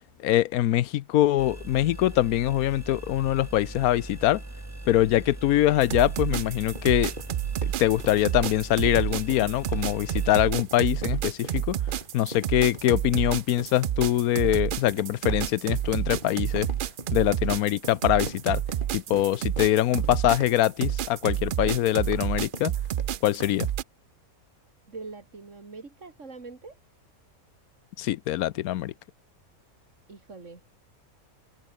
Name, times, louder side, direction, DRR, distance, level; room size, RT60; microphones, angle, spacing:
voice 1, 0.2-4.4 4.9-7.1 7.6-11.8 12.1-16.7 17.1-18.6 18.9-22.7 23.2-23.7 28.0-28.9, left 14 dB, 90° left, 1.1 m, -23 dB
sound 1, 1.4-10.5, right 1 dB, 10° right, 1.4 m, -40 dB
sound 2, 5.8-23.8, right 11 dB, 85° right, 0.4 m, -29 dB
sound 3, 5.9-23.7, right 2 dB, 35° right, 4.2 m, -42 dB
voice 2, 24.9-26.8 30.1-30.6, right 4 dB, 55° right, 3.1 m, -43 dB
open air
omnidirectional pair, 1.5 m